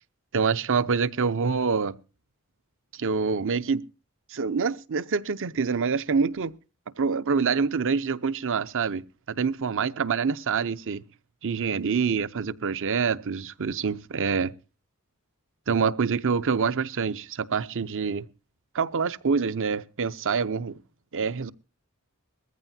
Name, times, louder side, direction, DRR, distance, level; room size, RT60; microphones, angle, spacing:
voice 1, 0.3-1.9 2.9-3.9 4.3-6.5 7.0-9.0 9.4-11.0 11.4-14.5 15.7-18.3 18.7-20.8 21.1-21.5, right 5 dB, 60° right, 0.7 m, -26 dB
20.5 x 15.0 x 2.7 m
head